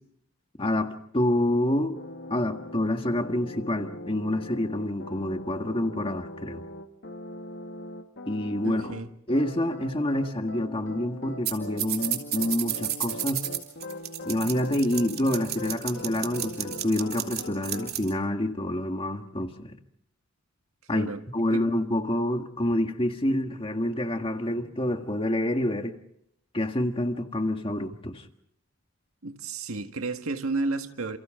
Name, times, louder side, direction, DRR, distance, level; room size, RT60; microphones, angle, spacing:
voice 1, 0.6-2.0 2.3-6.6 8.3-8.8 9.3-13.5 14.3-19.8 20.9-26.0 26.5-28.2, left 1 dB, 25° left, 1.7 m, -27 dB
sound 1, 1.9-9.0 9.3-17.9, left 1 dB, 55° left, 1.7 m, -41 dB
voice 2, 8.6-9.1 20.9-21.2 21.5-21.7 29.2-31.2, right 3 dB, 85° right, 1.8 m, -32 dB
sound 2, 11.5-11.6 11.8-18.1, right 12 dB, 45° right, 3.0 m, -31 dB
29.0 x 28.5 x 3.8 m
head